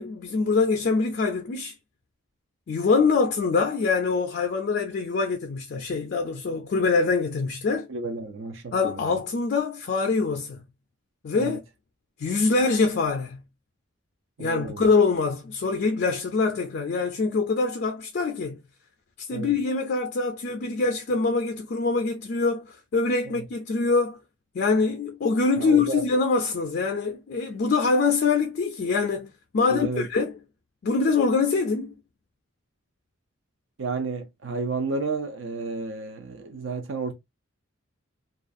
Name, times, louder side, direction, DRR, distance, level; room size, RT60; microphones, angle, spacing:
voice 1, 0.0-1.7 2.7-7.9 8.7-10.6 11.2-11.6 12.2-13.4 14.4-18.6 19.3-24.2 24.5-30.4 30.8-32.0, left 4 dB, 50° left, 0.3 m, -24 dB
voice 2, 7.9-9.2 11.3-11.6 14.4-14.9 19.3-19.5 23.3-23.5 25.6-26.1 29.6-30.1 33.8-37.1, right 3 dB, 65° right, 0.4 m, -32 dB
2.4 x 2.3 x 2.5 m
head